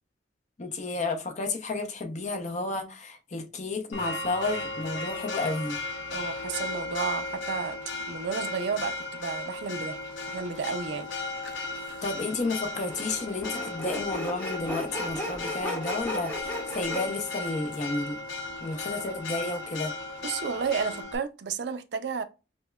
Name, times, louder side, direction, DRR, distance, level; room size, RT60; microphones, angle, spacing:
voice 1, 0.6-5.8 12.0-18.2 18.6-19.9, left 3 dB, 40° left, 0.6 m, -32 dB
Church bell, 3.9-21.2, left 2 dB, 85° left, 0.6 m, -36 dB
voice 2, 6.1-7.8 8.1-10.0 10.3-11.1 20.2-22.2, right 5 dB, 65° right, 0.4 m, -32 dB
sound 1, 6.2-21.0, right 1 dB, 40° right, 1.6 m, -52 dB
Sawing, 11.7-11.8 12.9-17.0, equal, 10° left, 0.9 m, -35 dB
5.3 x 2.1 x 2.2 m
head